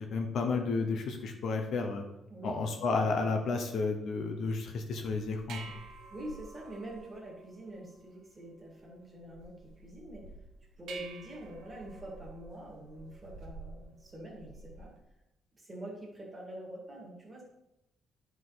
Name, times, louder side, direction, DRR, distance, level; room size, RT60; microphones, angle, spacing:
voice 1, 0.0-2.0 2.4-5.8, left 4 dB, 50° left, 4 dB, 0.8 m, -32 dB
sound 1, 5.0-15.0, right 3 dB, 65° right, 0.9 m, -50 dB
voice 2, 6.1-10.2 10.8-14.9 15.5-17.4, right 1 dB, 15° right, -3 dB, 1.9 m, -45 dB
10.5 x 4.9 x 4.0 m, 0.90 s
cardioid pair, 180°, 0 cm